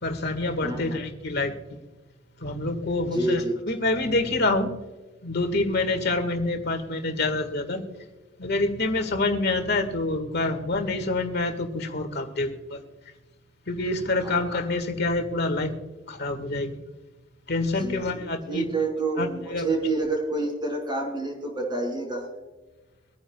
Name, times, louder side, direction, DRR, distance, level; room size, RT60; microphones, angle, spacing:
voice 1, 0.0-1.5 2.4-4.7 5.2-7.8 8.4-12.8 13.7-15.7 16.1-16.7 17.5-18.7 19.2-19.7, left 2 dB, 60° left, 6 dB, 1.8 m, -27 dB
voice 2, 0.6-1.0 3.1-3.5 14.2-14.5 17.8-22.3, right 2 dB, 25° right, -1 dB, 4.6 m, -28 dB
24.5 x 9.7 x 2.3 m, 1.2 s
head